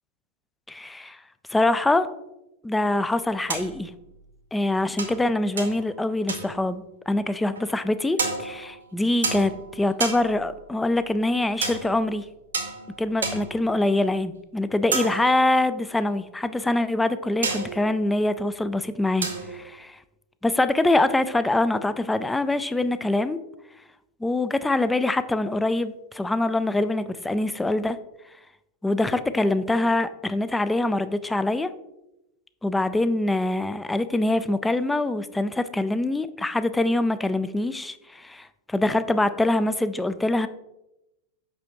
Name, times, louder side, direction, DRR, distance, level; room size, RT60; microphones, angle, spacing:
voice 1, 0.7-1.2 1.5-2.1 2.6-3.9 4.5-12.3 13.0-20.0 20.4-23.4 24.2-28.0 28.8-31.7 32.6-40.5, left 2 dB, 5° left, 13 dB, 0.3 m, -24 dB
sound 1, 3.5-3.9 5.0-5.9 6.3-6.8 7.5-7.8 8.2-8.9 9.2-10.6 11.6-12.0 12.5-13.7 14.9-15.8 17.4-18.1 19.2-19.7, right 4 dB, 70° right, 0.9 m, -31 dB
6.0 x 5.7 x 3.0 m, 0.91 s
figure-of-eight pair, 90°, 0 cm